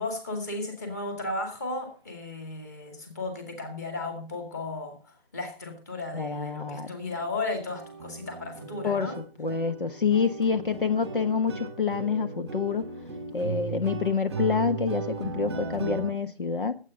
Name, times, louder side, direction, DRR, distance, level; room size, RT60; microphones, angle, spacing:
voice 1, 0.0-9.2, left 2 dB, 15° left, 4 dB, 2.2 m, -35 dB
voice 2, 6.1-6.9 8.8-12.8 13.3-16.7, left 5 dB, 55° left, 8 dB, 1.3 m, -27 dB
sound 1, 6.2-6.3 6.6-6.8 7.0-16.1, right 4 dB, 10° right, 1.5 m, -37 dB
19.0 x 8.5 x 3.9 m, 0.34 s
figure-of-eight pair, 170°, 31 cm